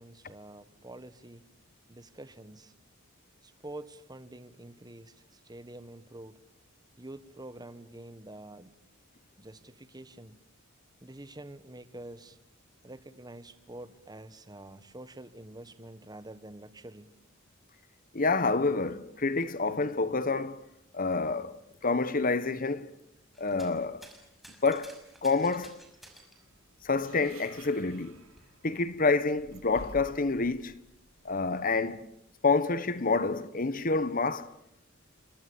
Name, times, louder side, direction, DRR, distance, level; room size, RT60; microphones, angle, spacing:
voice 1, 0.0-1.5 1.9-2.7 3.4-6.4 7.0-8.8 9.4-10.4 11.0-12.4 12.8-17.1, right 1 dB, 20° right, 1.4 m, -47 dB
voice 2, 18.1-20.6 20.9-22.9 23.4-24.1 24.6-24.9 25.2-25.8 26.8-28.1 28.6-30.8 31.2-32.1 32.4-34.5, left 3 dB, 40° left, 1.1 m, -28 dB
sound 1, 23.3-23.8 24.0-26.4 27.5-27.6 28.0-29.0 29.9-30.0, right 1 dB, ahead, 5.8 m, -53 dB
sound 2, 26.3-32.0, right 2 dB, 85° right, 3.5 m, -52 dB
29.0 x 25.5 x 7.2 m
head